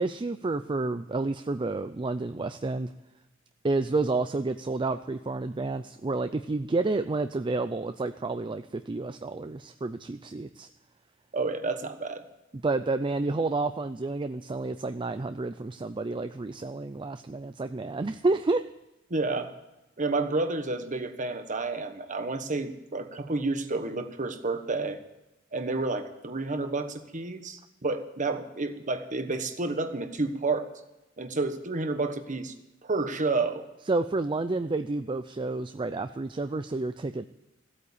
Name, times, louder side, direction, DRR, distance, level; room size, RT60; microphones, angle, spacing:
voice 1, 0.0-2.9 3.6-10.7 12.5-18.6 33.9-37.3, right 3 dB, 25° right, 10 dB, 0.4 m, -30 dB
voice 2, 11.3-12.2 19.1-19.5 20.0-25.0 25.5-30.7 31.2-32.5 32.8-33.6, right 3 dB, 40° right, 8 dB, 1.3 m, -30 dB
15.0 x 8.6 x 8.5 m, 0.94 s
head